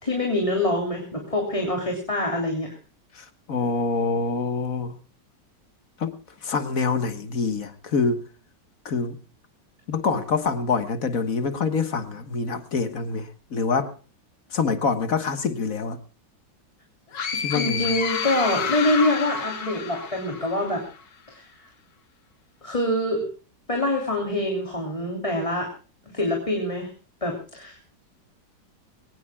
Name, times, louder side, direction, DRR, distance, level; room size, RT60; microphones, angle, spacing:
voice 1, 0.0-2.8 17.5-20.8 21.3-21.5 22.6-23.3 23.7-25.7 26.1-26.9 27.2-27.8, left 1 dB, 20° left, 3.2 m, -25 dB
voice 2, 3.2-5.0 6.0-8.2 8.9-9.2 9.9-13.9 14.5-16.0 17.3-17.9, left 4 dB, 55° left, 1.8 m, -26 dB
sound 1, 17.1-20.8, left 6 dB, 85° left, 2.2 m, -29 dB
23.0 x 18.5 x 2.3 m
omnidirectional pair, 1.9 m